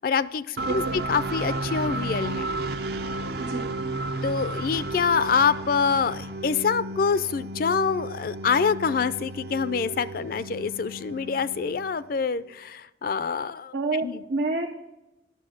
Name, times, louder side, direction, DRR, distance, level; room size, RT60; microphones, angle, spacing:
voice 1, 0.0-2.5 4.2-13.7 14.0-14.2, left 5 dB, 55° left, 16 dB, 0.4 m, -26 dB
sound 1, 0.6-12.3, right 2 dB, 60° right, 0.6 m, -33 dB
voice 2, 0.7-1.0 3.4-3.7 13.7-14.8, right 3 dB, 90° right, 1 dB, 0.9 m, -28 dB
9.7 x 6.6 x 6.3 m, 0.95 s
head